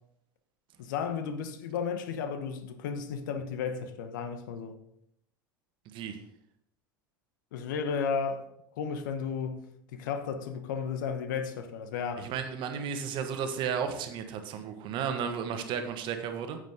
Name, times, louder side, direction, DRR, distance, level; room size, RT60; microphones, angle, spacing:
voice 1, 0.8-4.8 7.5-8.5 8.8-9.7 9.9-12.3, left 6 dB, 70° left, 1.0 m, -33 dB
voice 2, 5.9-6.2 12.2-16.6, right 7 dB, 50° right, 1.4 m, -33 dB
9.2 x 8.1 x 3.7 m
hypercardioid pair, 80°, 11 cm